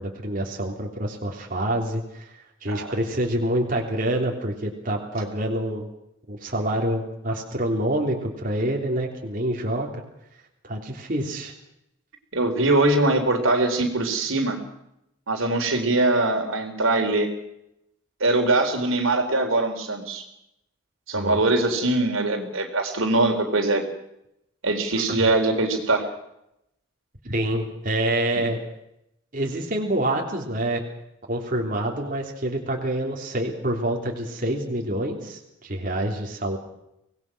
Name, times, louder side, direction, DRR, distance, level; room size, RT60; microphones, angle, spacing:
voice 1, 0.0-2.3 2.6-5.9 6.3-9.9 10.6-11.5 21.1-21.4 25.1-25.2 27.2-28.6 29.3-30.8 31.3-36.6, right 1 dB, 45° right, 0 dB, 3.3 m, -27 dB
voice 2, 12.3-14.6 15.3-17.3 18.2-20.2 21.1-23.8 24.6-26.1, right 2 dB, 85° right, 3 dB, 4.0 m, -22 dB
25.0 x 19.5 x 6.2 m, 0.81 s
head